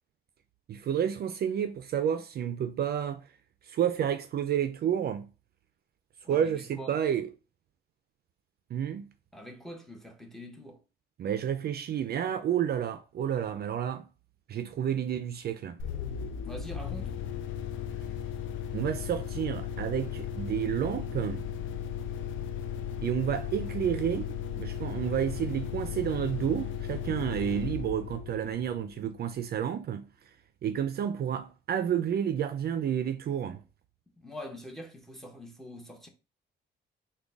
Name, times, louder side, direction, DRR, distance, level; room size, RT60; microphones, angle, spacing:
voice 1, 0.7-3.2 3.7-5.3 6.3-7.3 8.7-9.1 11.2-14.1 14.5-15.8 18.7-21.4 23.0-24.2 24.6-30.1 30.6-33.6, right 9 dB, 55° right, 0.4 m, -30 dB
voice 2, 6.2-7.0 9.3-10.8 16.4-17.1 34.2-36.1, left 1 dB, ahead, 0.9 m, -44 dB
sound 1, 15.8-29.3, left 8 dB, 75° left, 0.5 m, -36 dB
3.7 x 2.2 x 3.5 m
cardioid pair, 90°, 20 cm